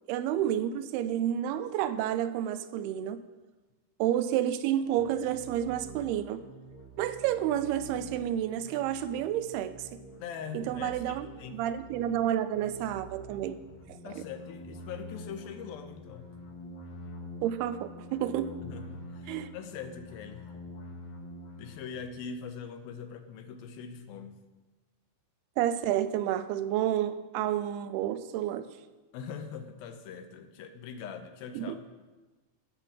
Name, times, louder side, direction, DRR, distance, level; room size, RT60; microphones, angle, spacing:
voice 1, 0.1-3.2 4.0-6.4 7.0-10.0 10.5-11.3 11.5-13.6 14.1-14.2 17.4-18.6 19.3-19.5 25.6-28.7 31.6-31.8, right 11 dB, 85° right, 12 dB, 2.6 m, -30 dB
sound 1, 5.0-22.0, equal, 55° left, 2.1 m, -47 dB
voice 2, 10.2-11.6 14.0-16.3 18.6-20.5 21.6-24.4 29.1-31.8, left 6 dB, 75° left, 7 dB, 2.4 m, -42 dB
13.5 x 5.6 x 7.3 m, 1.2 s
omnidirectional pair, 4.5 m